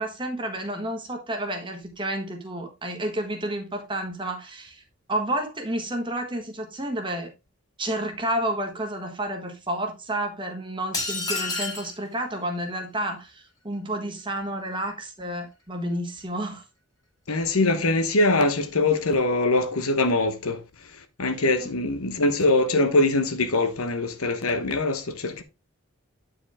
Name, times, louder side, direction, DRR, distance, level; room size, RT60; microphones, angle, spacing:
voice 1, 0.0-4.8 5.1-7.3 7.8-16.6 21.6-21.7, right 1 dB, 20° right, 1.4 m, -30 dB
sound 1, 10.9-11.9, left 3 dB, 15° left, 1.9 m, -29 dB
voice 2, 17.3-20.6 21.2-25.4, left 2 dB, 80° left, 1.1 m, -23 dB
8.9 x 4.8 x 3.5 m
head